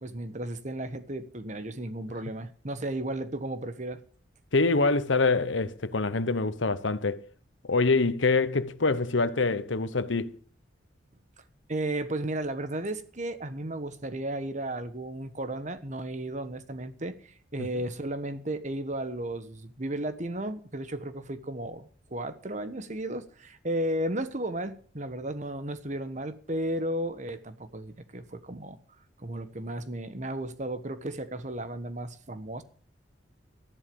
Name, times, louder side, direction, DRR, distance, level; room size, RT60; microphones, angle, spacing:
voice 1, 0.0-4.0 11.7-28.8 29.2-32.6, right 1 dB, 40° right, 1.3 m, -34 dB
voice 2, 4.5-7.2 7.7-10.3 17.6-17.7, left 3 dB, 85° left, 1.0 m, -25 dB
13.5 x 11.0 x 6.9 m
head